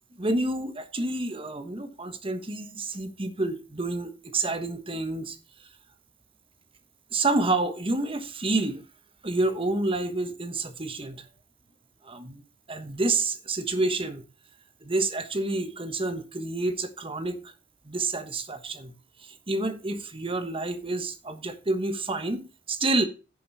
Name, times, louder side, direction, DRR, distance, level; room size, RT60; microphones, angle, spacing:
voice 1, 0.2-5.4 7.1-8.8 9.2-11.2 12.0-12.4 12.7-14.2 14.8-17.5 17.8-18.9 19.2-23.1, right 2 dB, 30° right, 1.2 m, -29 dB
11.0 x 7.0 x 4.1 m
head